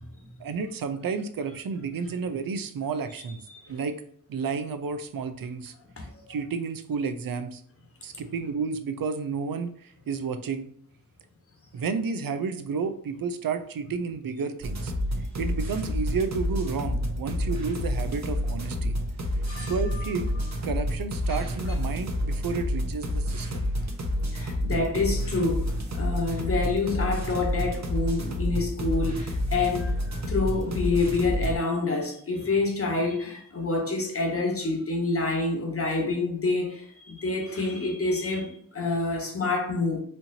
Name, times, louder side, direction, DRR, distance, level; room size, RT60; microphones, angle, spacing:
voice 1, 0.4-3.4 3.7-4.0 4.3-5.7 6.3-7.6 8.0-10.7 11.7-14.9 15.4-19.0 19.6-20.3 20.6-23.7, right 5 dB, 75° right, 0.5 m, -31 dB
voice 2, 6.0-6.4 19.5-20.1 21.3-21.5 23.5-23.6 24.3-40.0, left 3 dB, 40° left, 1.1 m, -28 dB
running music, 14.6-31.6, left 1 dB, 50° right, 0.8 m, -29 dB
4.3 x 2.8 x 2.7 m
wide cardioid pair, 70°, 34 cm